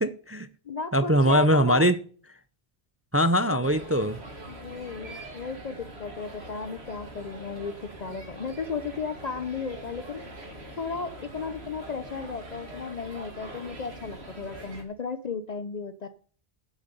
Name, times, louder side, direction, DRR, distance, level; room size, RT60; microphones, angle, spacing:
voice 1, 0.0-0.5 0.9-2.0 3.1-4.2, equal, 20° right, 0.4 m, -22 dB
voice 2, 0.6-1.9 3.4-3.6 4.5-7.7 8.0-10.2 10.8-16.1, left 5 dB, 45° left, 0.7 m, -35 dB
sound 1, 3.6-14.8, right 1 dB, 85° right, 2.5 m, -43 dB
7.8 x 7.3 x 8.2 m
omnidirectional pair, 1.0 m